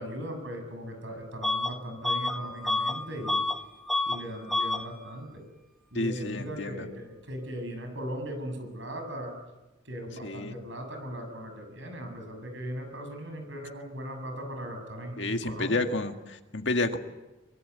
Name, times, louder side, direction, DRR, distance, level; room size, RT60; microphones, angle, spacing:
voice 1, 0.0-3.4 4.1-5.4 5.9-9.3 9.9-15.9, equal, 70° right, 5 dB, 7.0 m, -38 dB
Bus / Alarm, 1.4-1.7 2.0-3.6 3.9-4.2 4.5-4.8, left 2 dB, ahead, 1.5 m, -28 dB
voice 2, 6.0-6.9 10.2-10.5 15.2-17.0, left 2 dB, 65° left, 6 dB, 2.0 m, -30 dB
24.0 x 23.0 x 8.3 m, 1.1 s
head